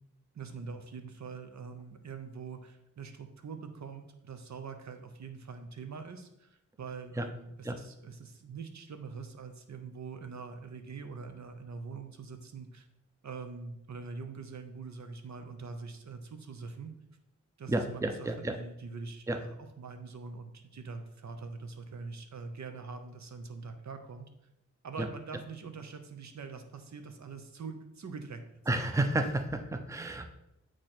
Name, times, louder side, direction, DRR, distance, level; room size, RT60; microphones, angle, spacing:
voice 1, 0.3-12.9 13.2-16.9 17.6-24.3 24.8-28.4, right 4 dB, 60° right, 7 dB, 0.9 m, -44 dB
voice 2, 17.7-18.6 19.3-19.4 25.0-25.1 28.7-30.3, right 2 dB, 10° right, 7 dB, 0.6 m, -31 dB
8.5 x 3.1 x 4.4 m, 0.83 s
cardioid pair, 55°, 31 cm